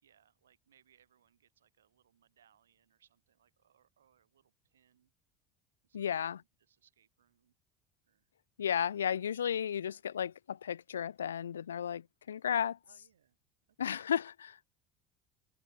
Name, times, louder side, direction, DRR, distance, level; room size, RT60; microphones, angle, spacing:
voice 1, 0.0-5.1 5.8-6.3 6.6-7.5 8.0-8.3 9.1-9.3 9.6-10.0 12.3-12.4 12.8-13.4 13.7-14.1, right 9 dB, 80° right, 5.6 m, -70 dB
voice 2, 5.9-6.4 8.6-12.8 13.8-14.6, left 8 dB, 80° left, 0.3 m, -34 dB
figure-of-eight pair, 65°, 0 cm